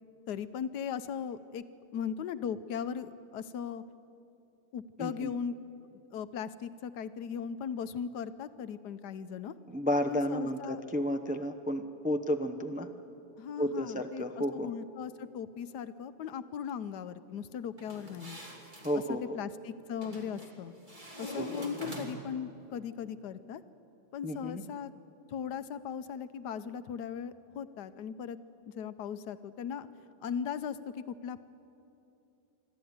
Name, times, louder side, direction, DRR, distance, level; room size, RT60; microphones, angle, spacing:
voice 1, 0.3-1.6 1.9-3.8 4.7-5.5 5.9-9.6 10.1-10.8 13.4-14.2 14.5-18.4 19.1-20.7 21.2-23.6 24.1-24.9 25.3-28.4 28.7-29.9 30.2-31.4, left 7 dB, 85° left, 13 dB, 1.3 m, -38 dB
voice 2, 5.0-5.3 9.7-12.9 13.6-14.7 18.8-19.4 21.3-21.6 24.2-24.6, equal, 10° right, 5 dB, 0.4 m, -32 dB
sound 1, 17.8-19.0 20.0-20.5 20.9-22.4, equal, 30° right, 3.1 m, -42 dB
25.5 x 12.5 x 9.5 m, 2.8 s
omnidirectional pair, 1.7 m